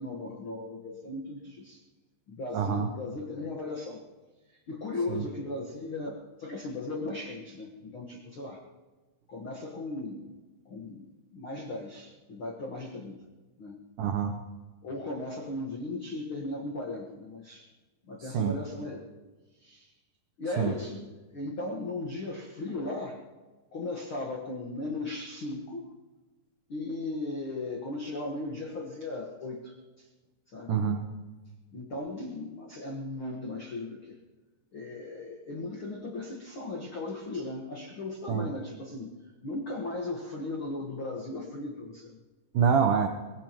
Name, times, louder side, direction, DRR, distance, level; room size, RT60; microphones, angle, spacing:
voice 1, 0.0-1.8 2.3-4.0 4.5-8.6 9.3-10.3 10.6-13.2 13.6-13.8 14.8-17.7 18.0-19.1 19.6-19.9 20.4-23.2 23.7-25.8 26.7-30.1 30.5-30.7 31.7-34.2 34.7-39.1 39.4-42.2, left 2 dB, 90° left, 0 dB, 1.1 m, -37 dB
voice 2, 2.5-2.9 5.1-5.2 14.0-14.3 18.3-18.6 20.6-20.7 30.7-31.0 38.3-38.5 42.5-43.1, right 7 dB, 80° right, 5 dB, 1.8 m, -25 dB
23.5 x 19.0 x 3.0 m, 1.2 s
omnidirectional pair, 4.8 m